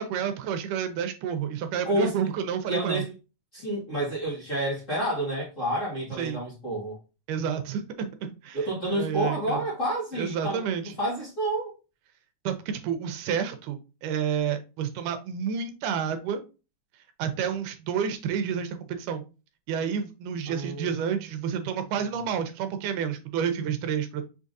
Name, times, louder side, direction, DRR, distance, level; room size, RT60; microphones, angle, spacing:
voice 1, 0.0-3.0 6.2-6.4 7.3-8.6 8.9-9.6 10.2-10.9 12.5-16.4 17.2-19.2 19.7-24.2, right 7 dB, 80° right, 2.1 m, -30 dB
voice 2, 1.8-2.2 2.7-3.1 3.5-7.0 8.5-11.7 20.5-21.2, right 1 dB, 30° left, 1.8 m, -29 dB
5.6 x 3.6 x 2.6 m
omnidirectional pair, 3.7 m